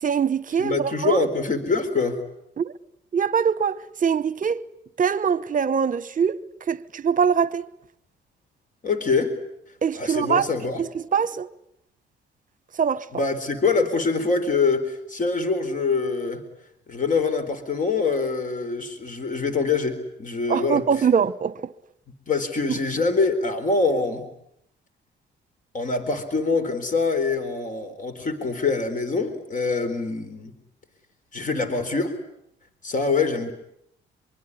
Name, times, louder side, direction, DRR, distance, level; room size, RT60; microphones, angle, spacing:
voice 1, 0.0-1.3 2.6-2.7 3.1-4.6 5.0-6.4 6.7-7.7 9.8-10.5 10.8-11.5 12.8-13.2 20.5-21.7, right 7 dB, 40° right, 1.0 m, -23 dB
voice 2, 0.6-2.2 8.8-9.3 10.0-10.8 13.1-16.4 16.9-21.1 22.3-24.2 25.7-30.5 31.3-32.1 32.8-33.5, left 4 dB, 40° left, 4.1 m, -24 dB
25.0 x 24.0 x 9.9 m
cardioid pair, 90°, 20 cm